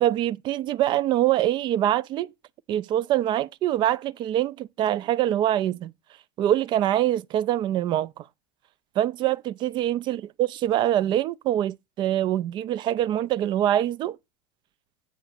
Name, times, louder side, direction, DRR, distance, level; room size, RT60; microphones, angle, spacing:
voice 1, 0.0-2.3 2.7-5.9 6.4-8.2 9.0-14.2, right 12 dB, 40° right, 0.4 m, -24 dB
7.8 x 4.9 x 4.9 m
hypercardioid pair, 85°, 12 cm